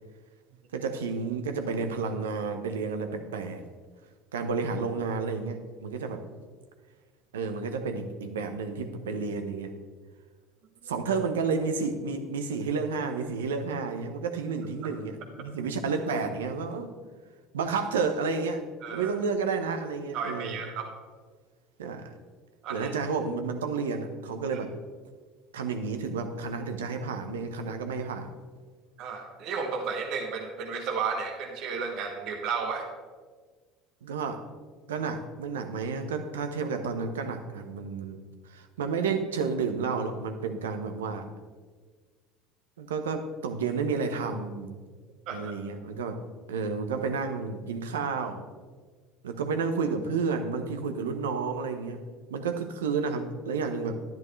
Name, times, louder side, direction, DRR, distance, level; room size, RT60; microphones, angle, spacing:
voice 1, 0.7-3.6 4.3-6.2 7.3-9.8 10.9-16.9 17.5-18.6 18.9-20.6 21.8-22.1 22.7-24.7 25.5-28.3 34.0-34.4 34.9-41.3 42.8-44.8 45.3-46.2 46.5-48.5 49.2-52.0 52.3-53.9, right 5 dB, 85° right, 7 dB, 0.9 m, -31 dB
voice 2, 18.8-19.1 20.1-20.9 22.6-22.9 29.0-32.8 45.3-45.5, right 5 dB, 60° right, 3 dB, 1.2 m, -33 dB
10.5 x 10.5 x 3.2 m, 1.5 s
hypercardioid pair, 75°, 0 cm